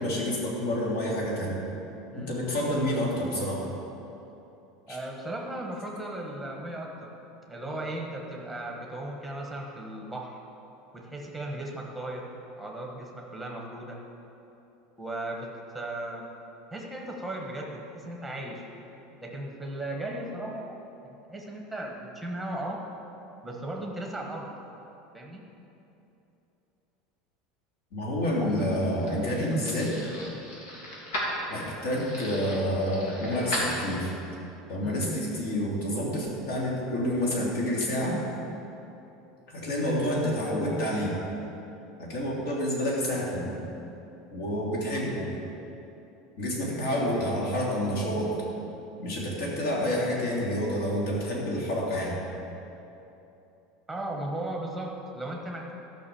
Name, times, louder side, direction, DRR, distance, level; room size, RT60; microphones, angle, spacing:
voice 1, 0.0-1.6 2.1-3.7 4.9-5.0 27.9-30.0 31.5-34.1 34.7-38.2 39.5-41.2 42.0-43.6 44.3-45.3 46.4-48.4 49.0-52.2, equal, 65° left, -4 dB, 3.0 m, -28 dB
voice 2, 4.9-7.1 7.5-10.4 10.9-12.3 12.6-14.0 15.0-16.3 16.7-18.6 19.2-20.8 21.0-22.8 23.4-24.5 25.1-25.4 28.4-30.1 34.8-35.0 53.9-55.7, right 1 dB, ahead, 0 dB, 1.2 m, -36 dB
sound 1, 28.3-34.3, equal, 85° left, 2.8 m, -36 dB
13.0 x 5.9 x 7.0 m, 2.9 s
supercardioid pair, 175°, 0 cm